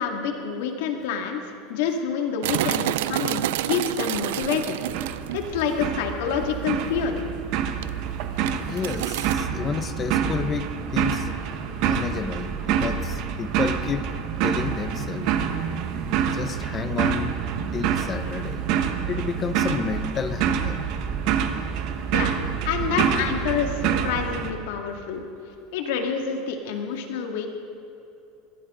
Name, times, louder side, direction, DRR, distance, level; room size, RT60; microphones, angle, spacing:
voice 1, 0.0-4.8 5.3-7.2 22.1-22.3 22.6-25.2 25.7-27.5, left 6 dB, 75° left, 3 dB, 2.1 m, -27 dB
sound 1, 2.4-5.9 6.2-6.4 7.0-7.4 7.7-9.3, right 15 dB, 85° right, 0.3 m, -29 dB
sound 2, 4.9-24.5, right 8 dB, 50° right, 1.1 m, -27 dB
voice 2, 8.7-11.3 11.8-14.1 14.4-15.4 16.2-17.4 17.7-18.6 19.1-20.9, left 6 dB, 20° left, 11 dB, 0.7 m, -31 dB
22.5 x 16.5 x 3.8 m, 2.9 s
cardioid pair, 170°, 0 cm